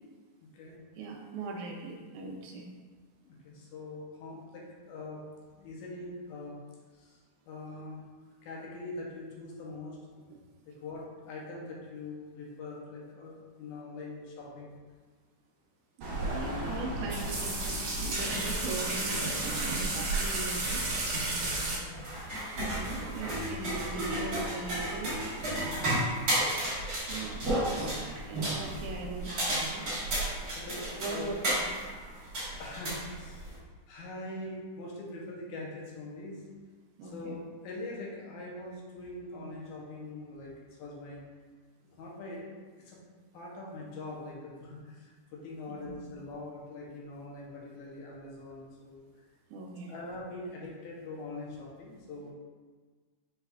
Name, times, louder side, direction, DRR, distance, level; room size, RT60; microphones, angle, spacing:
voice 1, 1.0-2.7 10.3-10.4 16.0-20.8 22.6-25.1 27.1-29.9 31.0-31.7 37.0-37.4 46.0-46.1 49.5-50.0, right 3 dB, 80° right, 0 dB, 2.0 m, -40 dB
voice 2, 3.2-5.3 5.5-6.6 6.9-7.2 7.5-8.0 8.4-10.0 10.7-14.8 19.8-20.0 21.7-22.0 25.6-25.9 30.5-31.4 32.6-33.5 33.9-36.5 37.0-41.2 42.0-42.5 42.8-43.0 43.3-49.0 49.9-52.3, left 2 dB, 75° left, -3 dB, 2.1 m, -43 dB
sound 1, 16.0-21.8, right 2 dB, 60° right, 1.8 m, -32 dB
sound 2, 21.9-33.6, right 1 dB, 40° right, 1.5 m, -33 dB
5.5 x 4.0 x 2.3 m, 1.5 s
omnidirectional pair, 3.6 m